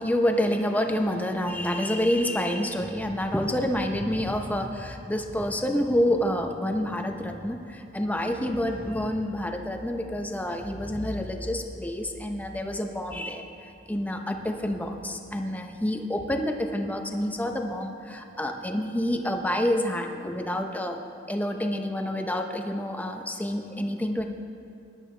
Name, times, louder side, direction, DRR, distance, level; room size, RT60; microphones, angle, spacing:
voice 1, 0.0-13.5 13.9-21.0 21.3-24.2, left 1 dB, 10° left, 4 dB, 0.8 m, -28 dB
19.5 x 11.0 x 3.3 m, 2.6 s
head